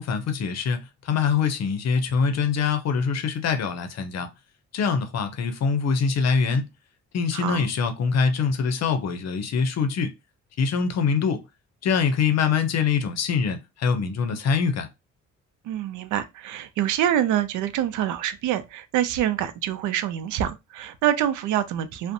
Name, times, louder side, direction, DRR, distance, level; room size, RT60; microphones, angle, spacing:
voice 1, 0.0-4.3 4.7-6.7 7.1-10.1 10.6-11.4 11.8-14.9, left 5 dB, 60° left, 0.6 m, -24 dB
voice 2, 7.3-7.7 15.6-22.1, right 11 dB, 80° right, 0.5 m, -26 dB
2.5 x 2.1 x 2.6 m
cardioid pair, 90°, 30 cm